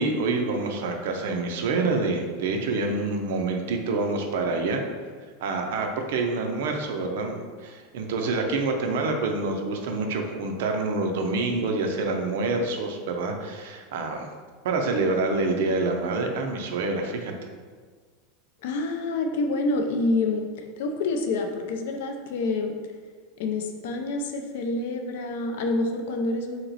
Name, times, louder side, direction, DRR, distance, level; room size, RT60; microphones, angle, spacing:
voice 1, 0.0-4.8 5.4-14.3 14.6-17.3, right 3 dB, 65° right, 3 dB, 0.5 m, -27 dB
voice 2, 18.6-20.5 20.8-22.7 23.4-26.7, left 2 dB, 65° left, 4 dB, 0.4 m, -27 dB
2.9 x 2.8 x 3.9 m, 1.5 s
supercardioid pair, 180°, 0 cm